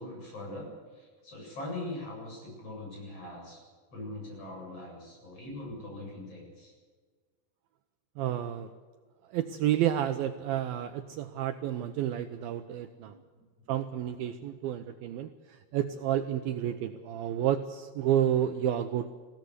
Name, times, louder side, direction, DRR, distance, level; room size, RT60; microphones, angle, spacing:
voice 1, 0.0-3.6 3.9-6.7 13.6-13.7, left 1 dB, 30° left, -1 dB, 8.7 m, -41 dB
voice 2, 8.2-8.7 9.3-13.1 13.7-19.1, right 11 dB, 85° right, 8 dB, 2.1 m, -30 dB
21.5 x 16.5 x 8.1 m, 1.5 s
omnidirectional pair, 5.3 m